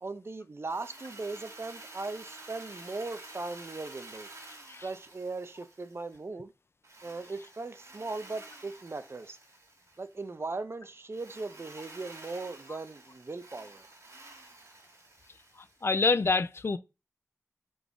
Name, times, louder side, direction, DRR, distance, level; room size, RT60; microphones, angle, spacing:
voice 1, 0.0-4.3 4.8-6.5 7.0-9.4 10.0-13.9, right 3 dB, 50° right, 0.6 m, -38 dB
Drill, 0.6-6.2 6.8-10.1 11.1-15.9, right 2 dB, 65° right, 1.5 m, -50 dB
voice 2, 15.8-16.8, left 4 dB, 50° left, 0.3 m, -26 dB
3.9 x 3.4 x 3.6 m
cardioid pair, 45°, 6 cm